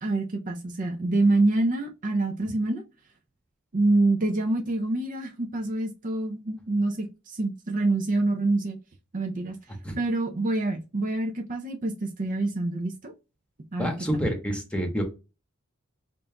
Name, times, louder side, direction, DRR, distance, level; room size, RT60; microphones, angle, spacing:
voice 1, 0.0-2.8 3.7-8.8 9.1-9.6 10.0-13.1 13.7-14.2, right 2 dB, 40° right, 0.5 m, -26 dB
voice 2, 13.8-15.0, equal, 5° left, 1.0 m, -28 dB
5.3 x 2.5 x 2.2 m
head